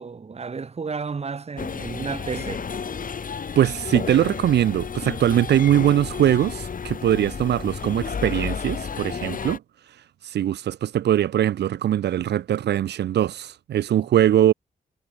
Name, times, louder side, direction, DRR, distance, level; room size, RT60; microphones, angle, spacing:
voice 1, 0.0-2.7 13.9-14.1, right 5 dB, 40° right, 0.9 m, -32 dB
sound 1, 1.6-9.6, left 6 dB, 55° left, 1.4 m, -32 dB
voice 2, 3.6-9.6 10.2-14.5, right 11 dB, 85° right, 0.5 m, -21 dB
cardioid pair, 70°, 17 cm